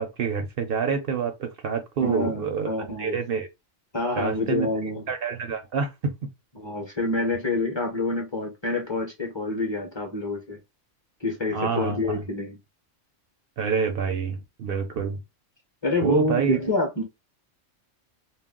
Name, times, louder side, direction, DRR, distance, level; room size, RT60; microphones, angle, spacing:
voice 1, 0.0-2.7 3.0-3.5 4.2-4.7 5.1-6.1 11.5-12.2 13.6-15.2 16.0-16.6, right 6 dB, 60° right, 0.6 m, -27 dB
voice 2, 2.0-3.2 3.9-5.0 6.6-10.6 11.2-12.6 15.8-17.0, left 2 dB, 30° left, 0.6 m, -27 dB
2.3 x 2.0 x 3.6 m
omnidirectional pair, 1.2 m